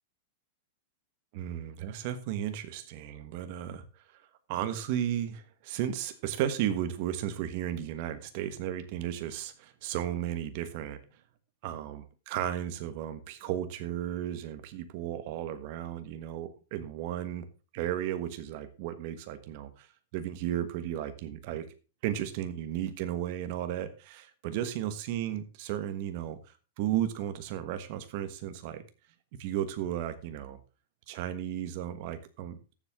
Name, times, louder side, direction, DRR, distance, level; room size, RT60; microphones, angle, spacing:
voice 1, 1.3-3.8 4.5-11.0 11.6-17.5 17.7-19.9 20.1-21.7 22.0-26.4 26.8-28.8 29.4-30.6 31.1-32.7, right 11 dB, 40° right, 10 dB, 1.3 m, -34 dB
14.0 x 7.5 x 3.6 m, 0.33 s
supercardioid pair, 170°, 0 cm